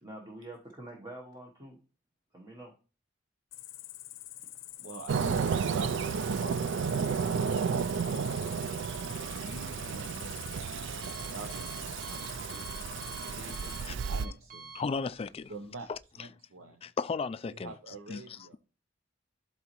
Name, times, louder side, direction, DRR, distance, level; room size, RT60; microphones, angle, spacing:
voice 1, 0.0-1.8 2.3-2.7, right 1 dB, 20° right, 1.1 m, -46 dB
Cricket, 3.5-13.9, left 15 dB, 75° left, 0.6 m, -46 dB
voice 2, 4.8-7.9 9.4-10.8 11.3-12.7 13.0-14.7 15.5-15.9 16.2-16.8 17.5-18.6, right 3 dB, 85° right, 0.8 m, -45 dB
Fireworks, 5.1-14.3, right 6 dB, 65° right, 0.3 m, -32 dB
Alarm, 9.8-16.0, right 4 dB, 45° right, 1.2 m, -50 dB
voice 3, 14.7-15.5 15.9-16.0 16.8-17.7 18.1-18.6, left 4 dB, 30° left, 0.3 m, -35 dB
12.0 x 4.0 x 3.0 m
head